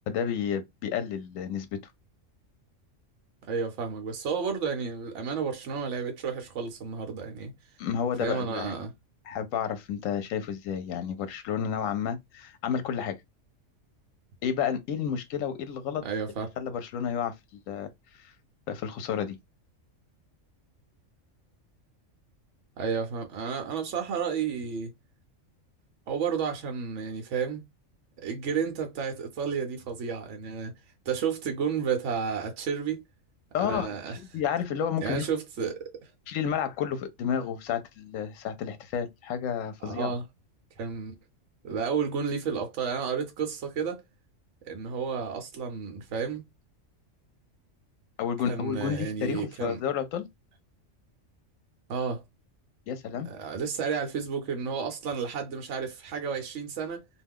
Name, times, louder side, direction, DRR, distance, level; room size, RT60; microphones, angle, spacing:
voice 1, 0.1-1.8 7.8-8.7 9.3-13.2 14.4-16.0 16.6-17.9 18.2-18.3 18.7-19.4 33.5-33.9 34.3-35.3 36.3-40.1 48.2-50.3 52.9-53.3, left 8 dB, 85° left, 1.0 m, -31 dB
voice 2, 3.5-7.5 8.2-8.9 16.0-16.5 22.8-24.9 26.1-27.6 28.2-30.7 31.1-33.0 33.6-34.2 35.0-35.7 39.8-40.2 40.8-41.1 41.6-44.0 44.6-46.4 48.5-49.8 51.9-52.2 53.2-57.0, right 6 dB, 70° right, 1.0 m, -31 dB
2.5 x 2.2 x 3.4 m
omnidirectional pair, 1.3 m